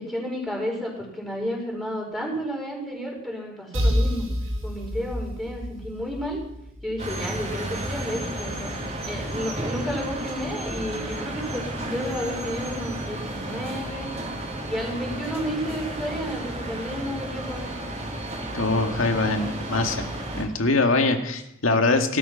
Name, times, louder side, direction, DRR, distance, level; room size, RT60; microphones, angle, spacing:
voice 1, 0.0-4.3 4.6-6.4 6.8-8.8 9.0-14.1 14.6-17.7, equal, ahead, -2 dB, 5.4 m, -31 dB
sound 1, 3.7-7.4, equal, 90° right, 5.2 m, -28 dB
sound 2, 7.0-20.4, right 1 dB, 35° right, 3.3 m, -32 dB
voice 2, 18.5-20.1 20.3-22.2, left 3 dB, 85° left, 4 dB, 2.1 m, -23 dB
18.0 x 12.5 x 5.7 m, 0.79 s
head